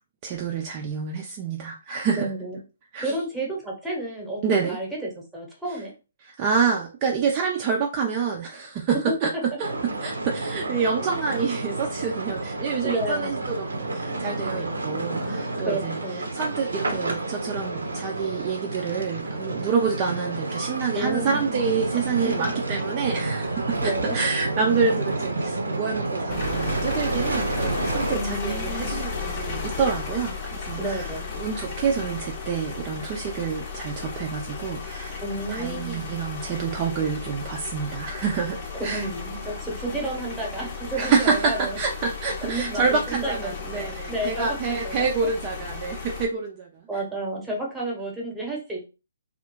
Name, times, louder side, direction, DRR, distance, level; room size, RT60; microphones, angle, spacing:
voice 1, 0.2-2.2 2.9-3.2 4.4-4.8 6.2-9.3 9.6-16.0 16.3-31.1 31.4-35.2 35.5-39.1 40.9-47.0, right 5 dB, 30° right, 1 dB, 0.3 m, -27 dB
voice 2, 2.1-2.6 3.0-5.9 9.1-9.4 12.8-13.4 15.6-16.3 20.9-21.6 22.2-22.6 23.8-24.1 28.1-28.9 30.8-31.3 35.2-36.1 38.8-41.8 42.4-45.1 46.9-48.9, right 2 dB, 5° right, -2 dB, 0.9 m, -31 dB
sound 1, 9.6-28.2, right 2 dB, 80° right, 0.5 m, -30 dB
sound 2, 26.3-46.3, left 5 dB, 35° left, 0.7 m, -34 dB
2.2 x 2.0 x 2.9 m, 0.30 s
figure-of-eight pair, 135°, 0 cm